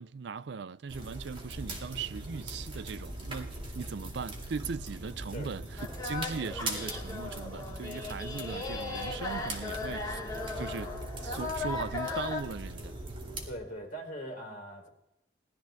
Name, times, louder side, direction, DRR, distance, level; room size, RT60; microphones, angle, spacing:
voice 1, 0.0-10.2 10.6-10.9 11.2-13.0, right 5 dB, 60° right, 0.4 m, -39 dB
sound 1, 0.9-13.5, right 1 dB, 25° right, 2.5 m, -40 dB
sound 2, 5.8-12.4, left 3 dB, 20° left, 2.2 m, -37 dB
voice 2, 13.4-14.9, equal, 45° left, 4.1 m, -41 dB
19.5 x 13.0 x 3.5 m
head